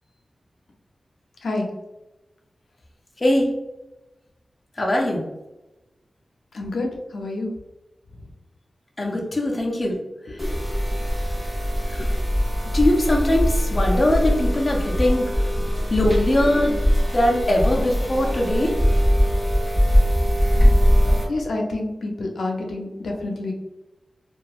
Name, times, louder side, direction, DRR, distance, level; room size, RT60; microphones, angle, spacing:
voice 1, 1.4-1.7 6.5-7.5 8.1-8.3 10.2-10.7 12.0-12.1 15.6-15.8 21.3-23.5, left 2 dB, 90° left, 0 dB, 0.5 m, -29 dB
voice 2, 4.8-5.2 9.0-10.0 12.0-12.1 12.7-15.3 15.9-16.8 17.1-18.7, left 1 dB, 30° left, 0 dB, 0.4 m, -21 dB
sound 1, 10.4-21.2, equal, 5° right, 1.3 m, -21 dB
2.9 x 2.3 x 2.4 m, 0.99 s
wide cardioid pair, 130°, 0 cm